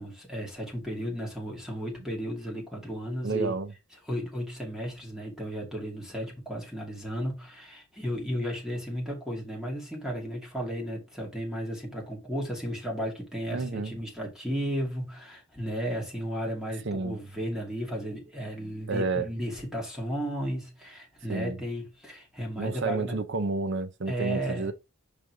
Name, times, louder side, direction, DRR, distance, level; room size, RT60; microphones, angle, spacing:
voice 1, 0.0-3.5 4.1-23.2 24.1-24.7, equal, 5° right, 2.6 m, -34 dB
voice 2, 3.2-3.7 13.5-13.9 16.8-17.2 18.9-19.3 21.3-21.6 22.6-24.7, right 3 dB, 60° right, 0.8 m, -30 dB
5.4 x 3.8 x 4.8 m
head